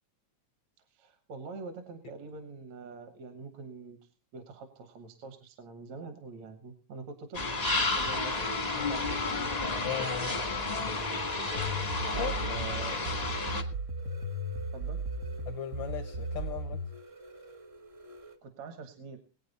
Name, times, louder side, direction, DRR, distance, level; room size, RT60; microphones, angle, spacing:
voice 1, 0.9-8.5 8.7-9.5 12.1-13.0 14.7-15.0 18.4-19.2, right 4 dB, 70° right, 2.5 m, -45 dB
sound 1, 7.3-13.6, left 3 dB, 35° left, 0.6 m, -31 dB
voice 2, 9.8-10.4 12.2-12.3 15.5-16.8, left 10 dB, 75° left, 1.1 m, -37 dB
sound 2, 10.9-18.4, right 4 dB, 45° right, 0.8 m, -50 dB
sound 3, 11.6-16.9, right 1 dB, 90° right, 0.9 m, -36 dB
21.0 x 8.9 x 4.1 m
omnidirectional pair, 3.3 m